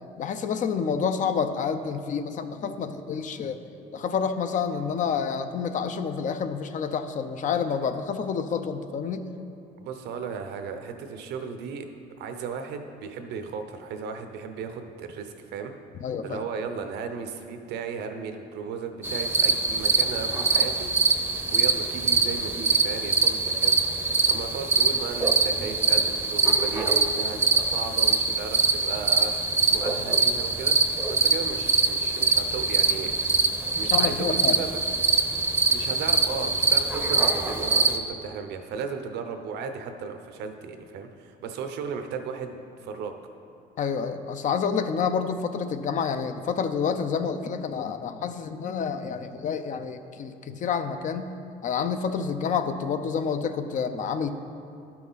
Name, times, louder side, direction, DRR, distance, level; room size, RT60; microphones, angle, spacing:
voice 1, 0.2-3.6 3.9-9.3 16.0-16.4 33.8-34.6 43.8-51.3 51.6-54.3, left 6 dB, 50° left, 9 dB, 0.6 m, -28 dB
voice 2, 9.8-11.9 12.2-15.7 16.2-20.9 21.5-30.7 31.1-33.1 33.8-34.8 35.7-43.1, right 6 dB, 80° right, 7 dB, 0.8 m, -35 dB
sound 1, 19.0-38.0, right 4 dB, 10° right, 0.7 m, -23 dB
12.0 x 5.9 x 4.0 m, 2.6 s
cardioid pair, 110°, 17 cm